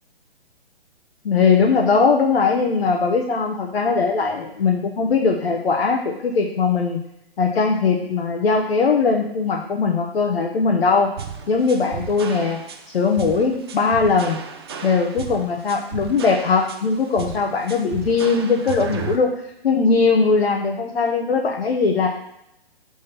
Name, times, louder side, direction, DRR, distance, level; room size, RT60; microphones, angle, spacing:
voice 1, 1.2-7.0 7.4-11.1 11.5-12.6 12.9-14.4 14.8-19.3 19.6-22.1, left 4 dB, 65° left, 1 dB, 0.9 m, -20 dB
sound 1, 11.2-19.2, right 7 dB, 25° right, 0.4 m, -34 dB
6.2 x 3.6 x 4.3 m, 0.83 s
figure-of-eight pair, 140°, 31 cm